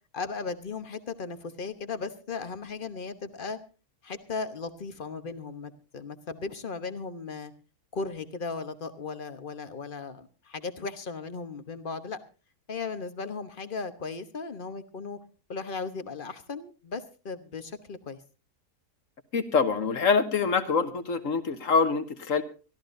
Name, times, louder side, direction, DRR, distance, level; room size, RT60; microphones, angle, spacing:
voice 1, 0.1-3.6 4.0-7.5 7.9-12.2 12.7-15.2 15.5-18.2, left 4 dB, 35° left, 10 dB, 1.2 m, -36 dB
voice 2, 19.3-22.4, left 5 dB, 55° left, 10 dB, 1.5 m, -25 dB
24.5 x 13.5 x 2.7 m, 0.33 s
omnidirectional pair, 1.7 m